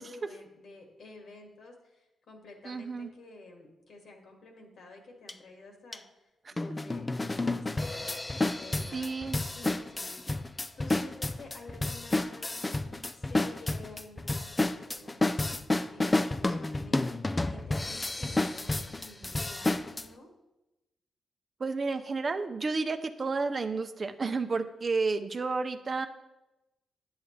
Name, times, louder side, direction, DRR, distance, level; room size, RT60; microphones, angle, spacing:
voice 1, 0.0-9.2 9.5-20.3, left 2 dB, 70° left, 1 dB, 2.0 m, -51 dB
voice 2, 2.6-3.1 6.5-6.6 8.9-9.4 21.6-26.1, right 4 dB, 45° right, 8 dB, 0.6 m, -31 dB
sound 1, 5.3-5.4 5.9-6.0 6.6-20.0, left 2 dB, 25° left, 0.4 m, -31 dB
9.2 x 8.0 x 3.2 m, 0.98 s
supercardioid pair, 45°, 0 cm